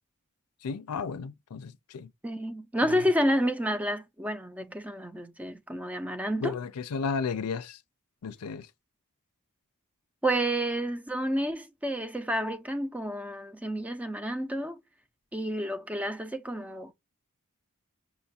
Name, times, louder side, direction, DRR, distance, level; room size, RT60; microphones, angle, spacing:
voice 1, 0.6-2.1 2.9-3.0 6.4-7.8 8.2-8.7, left 5 dB, 80° left, 0.5 m, -33 dB
voice 2, 2.2-6.5 10.2-14.8 15.3-16.9, equal, 5° right, 0.4 m, -30 dB
5.8 x 2.4 x 2.7 m
head